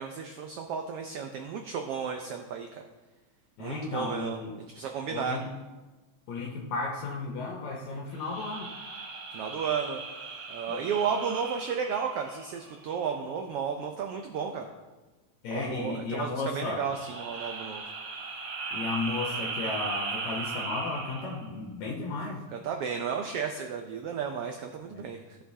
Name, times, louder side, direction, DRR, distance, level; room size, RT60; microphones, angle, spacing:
voice 1, 0.0-2.8 3.6-4.4 4.7-5.4 9.3-10.0 10.5-14.7 15.5-17.8 22.5-25.4, right 6 dB, 90° right, 4 dB, 1.3 m, -33 dB
voice 2, 3.6-4.5 5.1-5.5 6.3-8.7 10.7-10.8 15.4-16.8 18.7-22.4 24.9-25.0, left 3 dB, 75° left, -1 dB, 2.1 m, -34 dB
sound 1, 8.1-12.9 16.7-21.5, right 4 dB, 55° right, 1.3 m, -38 dB
15.0 x 6.1 x 2.7 m, 1.2 s
omnidirectional pair, 3.3 m